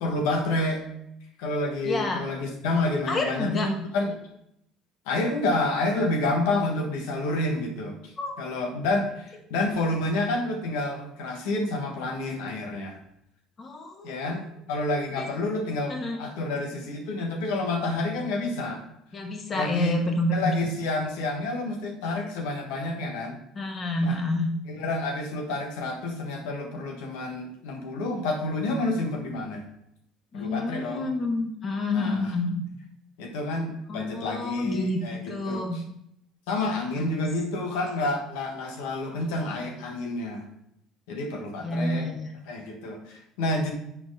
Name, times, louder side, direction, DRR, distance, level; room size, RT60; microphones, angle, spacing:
voice 1, 0.0-0.8 1.4-4.1 5.0-8.1 8.4-13.0 14.0-18.8 19.5-20.0 20.3-23.4 24.0-24.2 24.7-29.6 30.3-31.1 31.9-32.3 33.2-35.6 36.5-40.5 41.1-42.1 42.5-43.7, left 2 dB, 85° left, 3 dB, 1.4 m, -29 dB
voice 2, 1.8-2.2 3.1-3.7 8.2-8.4 13.6-14.3 15.2-15.3 15.9-16.2 19.1-20.5 23.5-24.5 30.3-32.7 33.9-35.0 35.3-35.8 36.9-37.2 41.6-42.3, left 2 dB, 35° left, 3 dB, 1.6 m, -28 dB
8.8 x 4.3 x 4.9 m, 0.76 s
supercardioid pair, 100°, 0 cm